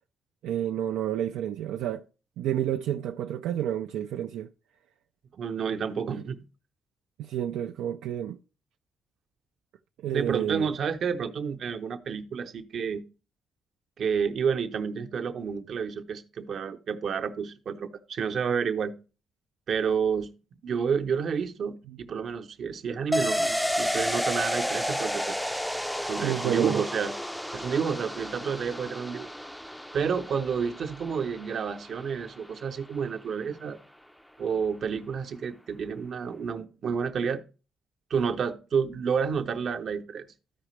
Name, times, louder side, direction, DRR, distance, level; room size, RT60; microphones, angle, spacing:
voice 1, 0.4-2.0 2.4-4.5 6.1-6.3 7.2-8.4 10.0-10.7 21.9-22.0 26.2-26.8, right 11 dB, 90° right, 0.3 m, -30 dB
voice 2, 5.4-6.4 10.1-13.0 14.0-18.9 19.7-20.3 20.6-25.4 26.0-27.1 27.5-29.3 29.9-33.8 34.4-37.4 38.1-40.3, right 6 dB, 60° right, 0.8 m, -30 dB
sound 1, 23.1-32.5 32.8-32.9, equal, 5° left, 0.4 m, -32 dB
13.5 x 5.0 x 3.1 m
cardioid pair, 90°, 0 cm